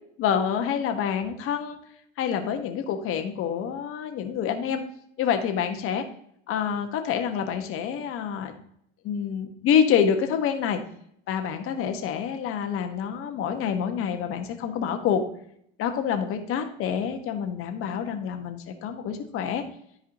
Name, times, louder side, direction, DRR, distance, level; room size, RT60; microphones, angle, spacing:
voice 1, 0.2-1.8 2.2-4.8 5.2-6.0 6.5-8.5 9.0-10.8 11.3-15.2 15.8-19.6, left 8 dB, 45° left, 6 dB, 1.4 m, -27 dB
13.5 x 4.9 x 2.9 m, 0.69 s
supercardioid pair, 125°, 30 cm